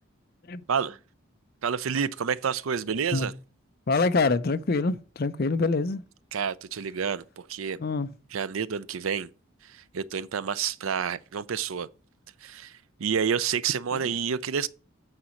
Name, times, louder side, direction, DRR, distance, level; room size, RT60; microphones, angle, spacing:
voice 1, 1.6-3.3 6.3-7.8 8.3-9.3 9.6-11.9 12.4-14.7, right 7 dB, 80° right, 0.5 m, -29 dB
voice 2, 3.9-6.0 7.8-8.1 13.9-14.1, left 3 dB, 45° left, 0.5 m, -25 dB
8.8 x 4.2 x 6.2 m
head